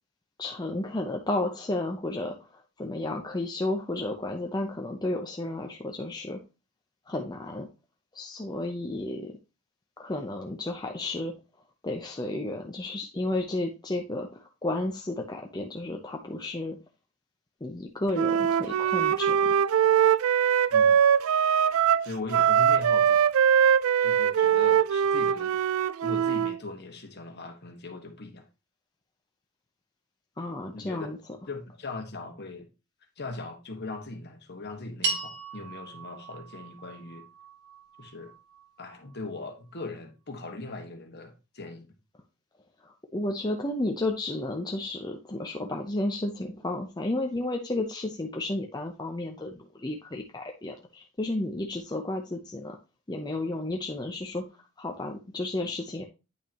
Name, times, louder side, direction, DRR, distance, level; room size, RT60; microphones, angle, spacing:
voice 1, 0.4-2.4 2.8-6.4 7.1-7.7 8.1-9.4 10.0-11.3 11.8-16.8 17.6-19.6 30.4-31.2 42.8-52.8 53.1-54.4 54.8-56.0, left 2 dB, 20° left, 0.7 m, -32 dB
Wind instrument woodwind instrument, 18.1-26.6, right 8 dB, 70° right, 0.3 m, -22 dB
voice 2, 22.0-23.2 24.0-25.6 26.0-28.4 30.7-31.1 31.5-32.7 33.2-37.3 38.0-38.3 38.8-41.9, left 3 dB, 50° left, 1.5 m, -39 dB
sound 1, 35.0-39.5, right 3 dB, 50° right, 2.1 m, -37 dB
9.0 x 5.6 x 2.9 m
head